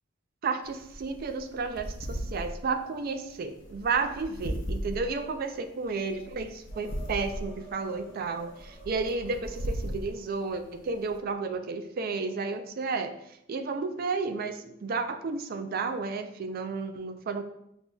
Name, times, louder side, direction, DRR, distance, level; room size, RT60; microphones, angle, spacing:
voice 1, 0.4-13.1 13.5-17.4, right 4 dB, 50° right, 8 dB, 0.4 m, -32 dB
sound 1, 0.6-11.2, equal, 65° left, 0.6 m, -38 dB
sound 2, 6.7-11.6, equal, 30° left, 1.1 m, -53 dB
5.8 x 2.6 x 2.3 m, 0.78 s
head